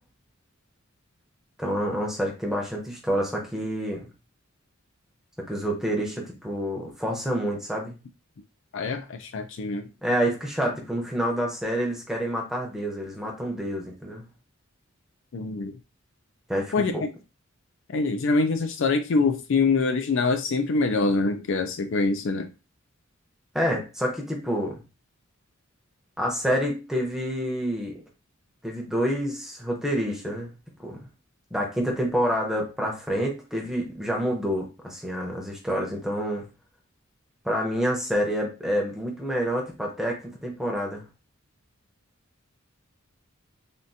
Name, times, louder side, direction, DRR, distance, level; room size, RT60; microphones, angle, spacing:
voice 1, 1.6-4.1 5.4-8.0 10.0-14.3 16.5-17.0 23.5-24.8 26.2-28.0 28.6-30.6 30.8-31.1 31.5-36.5 37.4-41.0, equal, ahead, -1 dB, 0.7 m, -28 dB
voice 2, 8.7-9.9 15.3-15.7 16.7-16.9 17.9-22.5, left 3 dB, 65° left, 8 dB, 0.4 m, -24 dB
3.6 x 2.5 x 2.7 m, 0.29 s
head